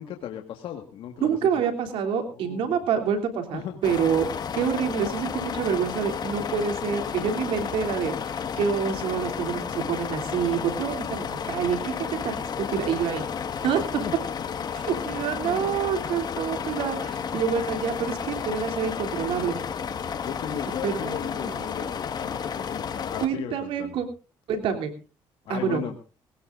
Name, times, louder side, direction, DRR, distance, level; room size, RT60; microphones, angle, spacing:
voice 1, 0.0-1.6 2.3-2.8 3.5-3.8 14.0-14.1 15.4-15.7 17.3-17.4 20.2-24.0 25.5-26.0, left 9 dB, 75° left, 4 dB, 1.8 m, -36 dB
voice 2, 1.2-4.3 4.6-8.1 8.6-13.2 13.6-13.8 14.7-19.6 20.8-21.9 23.2-24.0 24.5-24.9 25.5-25.8, right 7 dB, 80° right, 5 dB, 3.3 m, -27 dB
sound 1, 3.8-23.3, left 7 dB, 50° left, 1.7 m, -32 dB
21.0 x 18.5 x 2.6 m, 0.34 s
cardioid pair, 90°, 9 cm